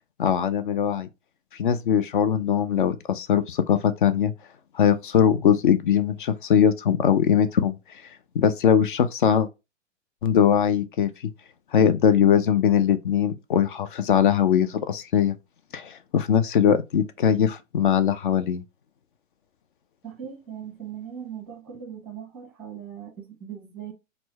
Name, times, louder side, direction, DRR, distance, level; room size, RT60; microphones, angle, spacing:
voice 1, 0.2-1.1 1.6-4.3 4.7-7.7 8.4-9.5 10.2-11.1 11.7-15.3 15.7-18.6, left 8 dB, 45° left, 0.4 m, -21 dB
voice 2, 20.0-23.9, right 8 dB, 5° right, 0.8 m, -39 dB
4.2 x 2.1 x 2.7 m
figure-of-eight pair, 115°, 38 cm